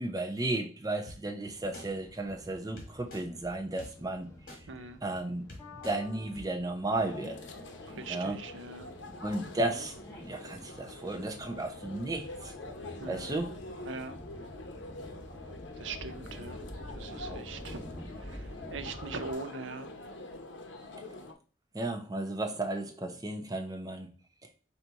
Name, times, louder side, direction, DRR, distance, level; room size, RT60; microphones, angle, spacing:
voice 1, 0.0-4.3 5.0-5.5 5.8-7.4 8.1-8.4 9.2-12.5 13.1-13.5 21.7-24.1, right 2 dB, 20° right, 0.7 m, -34 dB
sound 1, 1.1-1.2 1.7-1.9 2.8-3.2 3.8-3.9 4.5-4.6 5.2-5.3 5.5-6.0 6.3-6.4, left 1 dB, 50° left, 1.5 m, -45 dB
sound 2, 1.5-19.3, equal, 15° left, 1.2 m, -49 dB
voice 2, 4.7-5.0 8.0-8.9 13.0-13.2 13.8-14.2 15.8-16.6 17.0-17.9 18.3-18.4 18.7-19.9, right 4 dB, 85° right, 0.6 m, -41 dB
sound 3, 6.9-21.3, left 2 dB, 80° left, 0.8 m, -45 dB
4.3 x 2.7 x 4.6 m
head